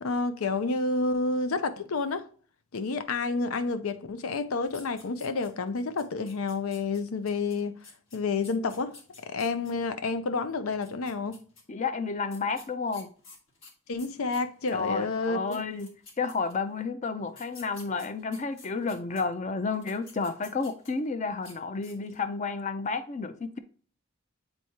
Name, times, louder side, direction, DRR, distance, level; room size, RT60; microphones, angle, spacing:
voice 1, 0.0-2.3 2.7-7.8 8.1-9.0 9.2-11.4 13.9-15.6, left 3 dB, 90° left, 0.6 m, -29 dB
sound 1, 4.7-5.7 6.0-9.7 10.7-11.6 12.3-14.8 15.2-15.3 15.5-16.7 17.3-19.2 19.7-21.1 21.4-21.6 21.8-22.3, left 3 dB, 65° left, 1.6 m, -51 dB
voice 2, 11.7-13.1 14.7-23.6, left 4 dB, 35° left, 0.5 m, -31 dB
7.8 x 4.5 x 2.8 m
head